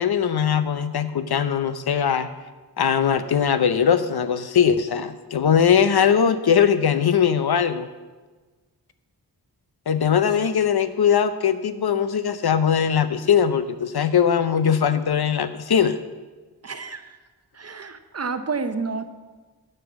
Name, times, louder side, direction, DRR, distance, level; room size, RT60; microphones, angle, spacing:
voice 1, 0.0-2.3 2.8-7.9 9.9-16.0, left 7 dB, 65° left, 11 dB, 0.7 m, -20 dB
voice 2, 16.6-17.2 17.5-19.0, right 4 dB, 40° right, 9 dB, 0.8 m, -30 dB
9.0 x 6.8 x 6.1 m, 1.3 s
wide cardioid pair, 65°, 40 cm